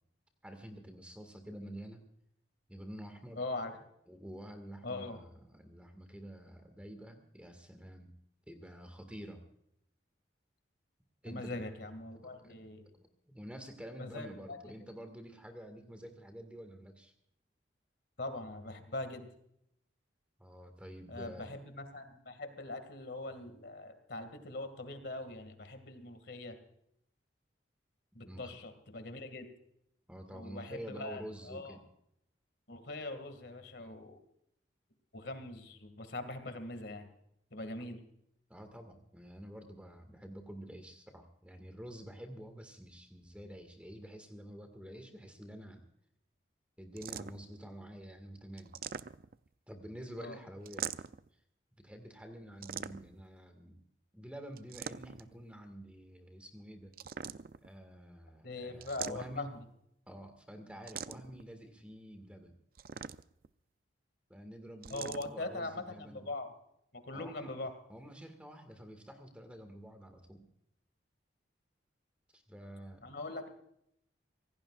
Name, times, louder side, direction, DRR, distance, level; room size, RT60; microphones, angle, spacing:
voice 1, 0.4-2.0 2.7-3.4 4.1-8.1 8.5-9.4 11.2-11.6 12.4-12.5 13.3-17.1 20.4-21.5 28.2-28.5 30.1-31.8 38.5-45.8 46.8-48.8 49.7-50.9 51.8-53.8 54.1-56.9 57.6-59.5 60.1-62.6 64.3-66.2 67.1-67.6 67.9-70.4 72.3-73.1, equal, 5° right, 6 dB, 1.8 m, -48 dB
voice 2, 3.4-3.7 4.8-5.2 11.3-12.9 14.0-14.7 18.2-19.3 21.1-26.6 28.1-29.5 30.3-31.8 32.7-34.2 35.1-37.1 37.5-38.0 50.2-50.4 58.4-59.5 64.9-66.5 66.9-67.7 73.0-73.5, left 2 dB, 60° left, 9 dB, 2.2 m, -42 dB
sound 1, 47.0-47.5 48.6-49.5 50.6-51.3 52.6-53.3 54.6-55.3 56.9-57.7 58.8-59.6 60.9-61.4 62.7-63.5 64.8-65.3, right 7 dB, 50° right, 0.5 m, -42 dB
25.5 x 17.5 x 2.5 m, 0.75 s
head